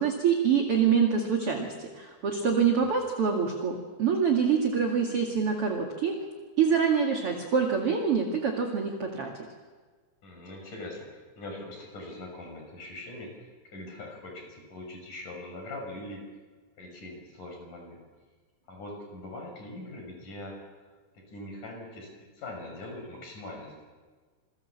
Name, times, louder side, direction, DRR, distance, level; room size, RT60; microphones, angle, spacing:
voice 1, 0.0-6.2 6.6-9.3, right 6 dB, 40° right, 2 dB, 2.5 m, -25 dB
voice 2, 10.2-16.2 16.8-18.0 18.7-20.6 21.1-23.8, left 2 dB, 45° left, 2 dB, 7.5 m, -42 dB
28.0 x 23.5 x 7.3 m, 1.4 s
omnidirectional pair, 5.1 m